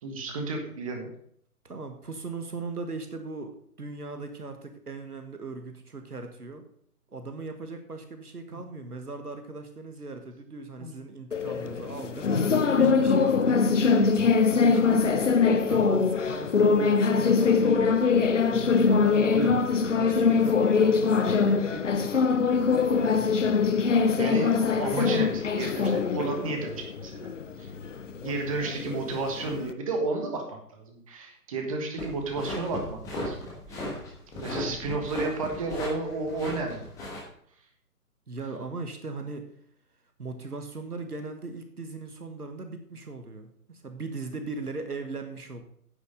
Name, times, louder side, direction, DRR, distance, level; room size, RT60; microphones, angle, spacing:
voice 1, 0.0-1.1 8.5-8.6 10.8-10.9 19.3-19.5 24.2-27.3 27.6-27.7 28.2-33.4 33.7-33.9 34.4-36.9, right 3 dB, 20° right, 3 dB, 1.4 m, -32 dB
voice 2, 1.6-6.6 7.1-12.3 12.8-14.2 14.6-18.0 18.5-19.7 19.9-23.4 34.5-34.8 38.3-39.5 40.2-45.6, right 3 dB, 70° right, 6 dB, 1.6 m, -39 dB
sound 1, 11.3-29.7, left 5 dB, 50° left, 0.7 m, -23 dB
sound 2, 32.0-37.2, left 1 dB, 5° left, 1.3 m, -36 dB
9.5 x 6.8 x 5.2 m, 0.66 s
figure-of-eight pair, 140°, 47 cm